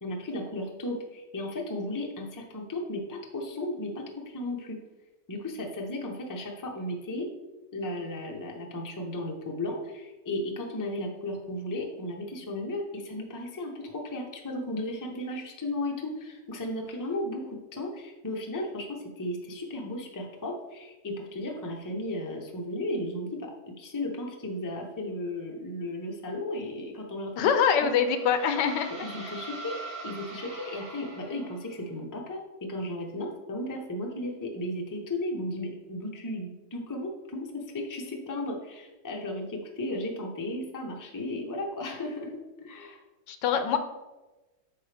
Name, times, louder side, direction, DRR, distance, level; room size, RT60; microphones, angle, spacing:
voice 1, 0.0-4.8 5.3-7.3 7.7-27.5 27.8-27.9 29.0-29.8 30.0-42.3 42.6-43.0, left 1 dB, 20° left, 0 dB, 0.6 m, -35 dB
voice 2, 27.4-28.9 29.2-29.3 43.3-43.8, left 7 dB, 80° left, 8 dB, 1.3 m, -24 dB
sound 1, 27.5-31.8, right 2 dB, 70° right, 2.5 m, -43 dB
8.4 x 5.7 x 3.4 m, 1.1 s
omnidirectional pair, 1.9 m